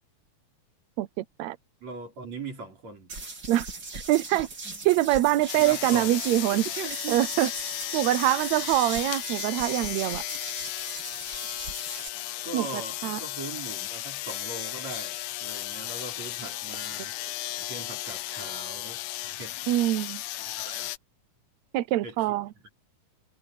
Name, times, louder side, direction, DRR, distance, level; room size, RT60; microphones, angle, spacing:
voice 1, 1.0-1.6 3.5-3.7 3.9-4.5 4.8-6.6 7.1-7.5 7.9-10.2 12.5-12.7 13.0-13.2 19.7-20.2 21.7-22.5, right 15 dB, 75° right, 1.7 m, -24 dB
voice 2, 1.8-3.1 5.6-6.2 6.5-7.3 12.4-17.2 17.6-19.0 19.4-19.6 20.5-20.9 22.0-22.4, right 4 dB, 55° right, 5.9 m, -40 dB
sound 1, 3.1-12.1, right 3 dB, 30° right, 4.8 m, -39 dB
sound 2, 5.5-21.0, left 15 dB, 80° left, 2.3 m, -35 dB
omnidirectional pair, 3.8 m